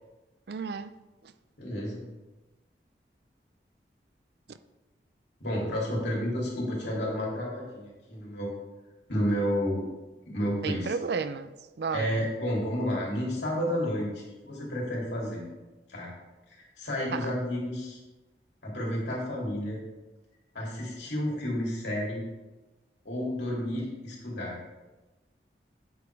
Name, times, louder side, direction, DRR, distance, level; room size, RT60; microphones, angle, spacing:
voice 1, 0.5-0.9 4.5-4.6 10.6-11.5 11.8-12.3 17.1-17.3, right 5 dB, 70° right, 0.4 m, -32 dB
voice 2, 1.6-2.0 5.4-8.5 9.1-9.9 10.3-10.9 11.9-15.4 15.9-16.1 16.5-18.0 18.6-19.8 20.5-22.2 23.0-24.6, equal, 85° left, 2.8 m, -31 dB
8.2 x 5.1 x 4.6 m
head